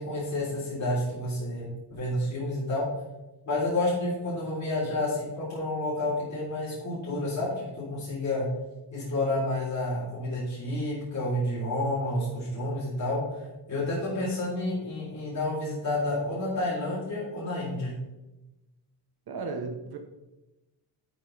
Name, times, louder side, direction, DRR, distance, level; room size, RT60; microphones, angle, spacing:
voice 1, 0.0-1.6 1.9-2.8 3.4-8.5 8.9-17.9, left 1 dB, 40° left, -8 dB, 3.4 m, -30 dB
voice 2, 19.3-20.0, right 4 dB, 55° right, 5 dB, 1.0 m, -34 dB
9.6 x 8.1 x 3.3 m, 1.0 s
wide cardioid pair, 150°, 44 cm